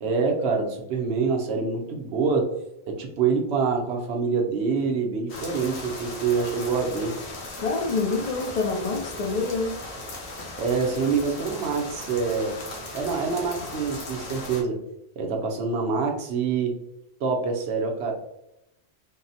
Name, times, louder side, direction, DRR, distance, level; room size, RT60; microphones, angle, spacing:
voice 1, 0.0-2.5 2.9-7.2 10.5-12.6 12.9-14.8 15.2-16.8 17.2-18.1, right 5 dB, 80° right, 2 dB, 0.9 m, -26 dB
sound 1, 5.3-14.6, left 2 dB, 90° left, 1.1 m, -37 dB
voice 2, 7.6-9.8, left 3 dB, 55° left, 2 dB, 0.4 m, -26 dB
3.7 x 2.0 x 2.6 m, 0.85 s
omnidirectional pair, 1.1 m